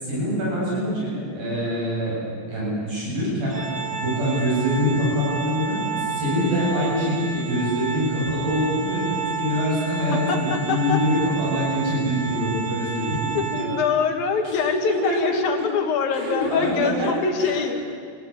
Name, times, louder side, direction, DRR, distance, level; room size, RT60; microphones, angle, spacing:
voice 1, 0.0-2.2 2.5-3.6 3.9-13.7 14.6-15.5 16.1-17.6, equal, 75° right, -5 dB, 9.9 m, -24 dB
Organ, 3.5-14.2, right 6 dB, 35° right, 1.8 m, -31 dB
voice 2, 10.1-11.0 13.3-17.8, left 6 dB, 75° left, 3 dB, 3.4 m, -24 dB
27.5 x 17.5 x 9.9 m, 2.2 s
omnidirectional pair, 4.2 m